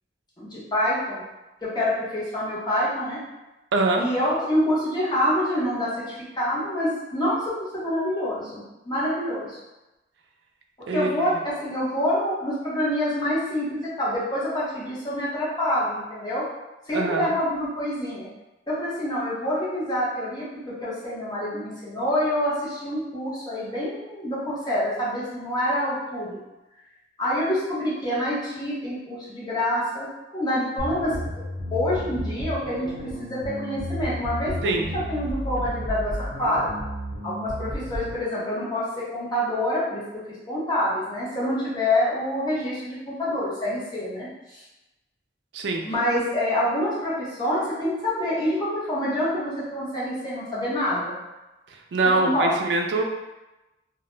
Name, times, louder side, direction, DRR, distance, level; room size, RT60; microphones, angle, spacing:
voice 1, 0.4-1.2 1.6-3.2 4.0-9.6 10.8-16.4 16.9-18.3 18.7-26.4 27.2-30.1 30.3-31.1 31.7-36.7 37.2-40.0 40.3-44.6 45.9-51.1 52.1-52.5, left 1 dB, 25° left, -8 dB, 0.8 m, -26 dB
voice 2, 3.7-4.1 10.9-11.3 16.9-17.3 34.6-35.0 45.5-45.8 51.7-53.0, right 2 dB, 70° right, 3 dB, 0.3 m, -24 dB
sound 1, 30.8-38.2, equal, 50° right, 0.8 m, -32 dB
2.2 x 2.1 x 3.0 m, 1.0 s
head